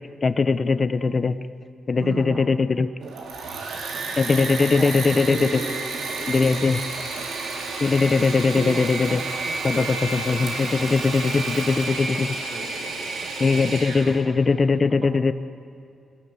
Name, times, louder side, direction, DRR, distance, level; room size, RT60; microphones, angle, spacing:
voice 1, 0.2-1.3 1.9-2.9 4.2-5.6 6.3-6.8 7.8-9.2 9.6-12.3 13.4-15.3, left 4 dB, 30° left, 12 dB, 0.5 m, -21 dB
voice 2, 2.0-2.5 3.0-5.1 6.1-6.2 7.2-7.3 8.5-9.9 12.8-13.6 15.0-15.2, right 5 dB, 70° right, 2 dB, 1.4 m, -38 dB
Engine / Mechanisms, 3.0-14.2, right 3 dB, 90° right, 3.2 m, -31 dB
voice 3, 5.3-6.5 7.3-7.4 12.5-13.1, right 2 dB, 55° right, 1 dB, 5.4 m, -36 dB
24.0 x 17.5 x 8.2 m, 2.4 s
wide cardioid pair, 175°, 0 cm